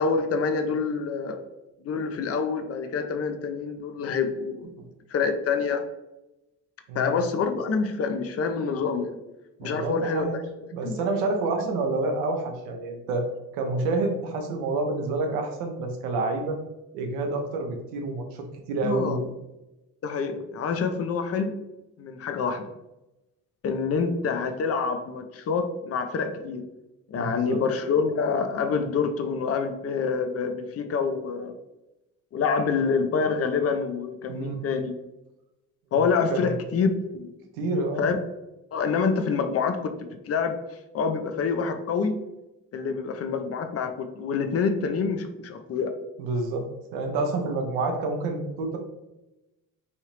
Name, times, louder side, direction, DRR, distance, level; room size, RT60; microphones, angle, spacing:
voice 1, 0.0-1.4 1.8-4.7 5.1-5.8 6.9-9.2 9.6-10.3 10.8-11.0 18.8-19.2 20.0-21.5 22.0-22.7 23.6-26.6 27.1-31.5 32.3-34.9 35.9-37.4 38.0-38.2 38.7-39.9 40.3-40.5 40.9-42.2 42.7-45.9, left 5 dB, 35° left, 7 dB, 0.5 m, -26 dB
voice 2, 6.9-7.2 9.6-10.4 10.7-13.3 13.5-16.6 16.9-19.3 27.2-27.6 34.3-34.6 36.0-36.4 37.6-38.1 46.2-46.7 46.9-48.8, right 3 dB, 70° right, 3 dB, 0.8 m, -28 dB
3.2 x 2.7 x 3.0 m, 0.97 s
hypercardioid pair, 50°, 46 cm